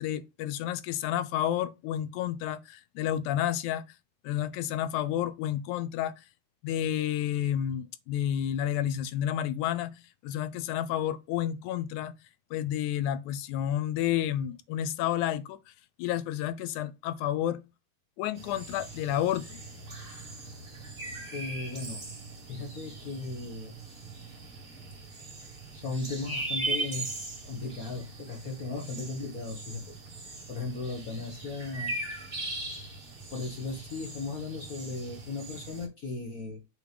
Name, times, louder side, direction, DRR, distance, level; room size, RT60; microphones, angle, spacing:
voice 1, 0.0-3.9 4.2-6.1 6.6-10.0 10.2-12.1 12.5-15.6 16.0-17.6 18.2-19.6, left 11 dB, 85° left, 2.1 m, -30 dB
sound 1, 18.4-35.9, right 2 dB, 20° right, 1.8 m, -40 dB
voice 2, 21.3-22.0 22.5-23.7 25.7-27.1 27.4-30.0 30.5-31.9 33.3-36.6, left 3 dB, 50° left, 1.0 m, -36 dB
6.8 x 3.1 x 5.1 m
omnidirectional pair, 3.4 m